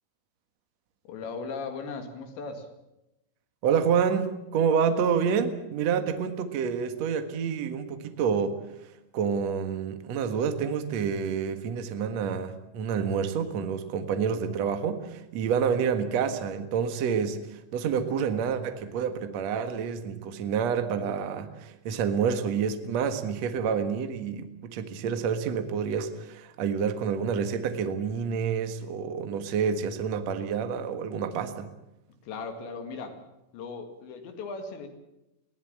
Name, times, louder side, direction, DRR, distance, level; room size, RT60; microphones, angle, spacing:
voice 1, 1.1-2.7 32.3-33.2 33.5-34.9, left 4 dB, 65° left, 6 dB, 4.1 m, -37 dB
voice 2, 3.6-8.6 9.1-31.7, right 7 dB, 85° right, 8 dB, 1.5 m, -28 dB
21.5 x 17.0 x 8.7 m, 0.92 s
omnidirectional pair, 5.8 m